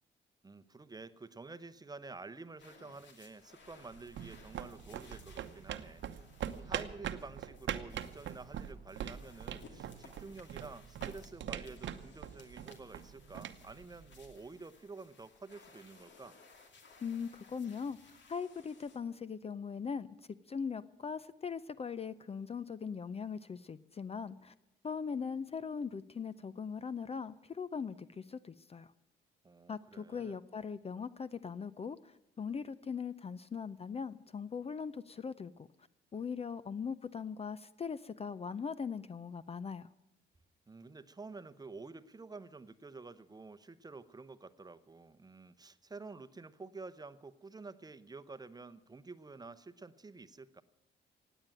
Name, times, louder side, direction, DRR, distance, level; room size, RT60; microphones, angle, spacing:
voice 1, 0.4-16.4 29.4-30.4 40.7-50.6, right 3 dB, 20° right, 11 dB, 0.8 m, -50 dB
sound 1, 2.6-19.0, left 4 dB, 65° left, 2.6 m, -61 dB
sound 2, 3.7-14.5, right 9 dB, 70° right, 1.0 m, -43 dB
voice 2, 17.0-20.1 20.5-24.5 24.8-28.9 29.7-35.7 36.1-39.9, left 6 dB, 30° left, 15 dB, 0.5 m, -40 dB
16.5 x 9.1 x 8.9 m, 0.86 s
cardioid pair, 90°, 20 cm